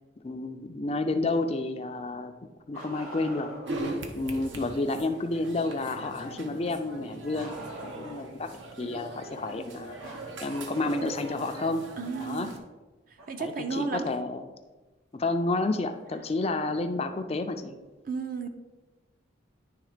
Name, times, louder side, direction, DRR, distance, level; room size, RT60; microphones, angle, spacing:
voice 1, 0.2-2.3 2.7-3.5 4.1-7.6 7.9-8.5 8.8-10.0 10.4-11.9 12.2-12.5 13.4-14.4 15.1-17.8, left 2 dB, 30° left, 7 dB, 0.4 m, -30 dB
Bark, 2.7-3.8 7.3-8.4 10.0-11.5 13.2-13.3 15.2-15.3 16.4-16.5, right 1 dB, 85° right, 2.2 m, -42 dB
sound 1, 3.6-12.6, right 2 dB, 70° right, 0.9 m, -40 dB
voice 2, 12.0-12.6 13.1-14.1 18.0-18.5, right 4 dB, 45° right, 6 dB, 0.6 m, -33 dB
10.5 x 3.5 x 4.9 m, 1.2 s
head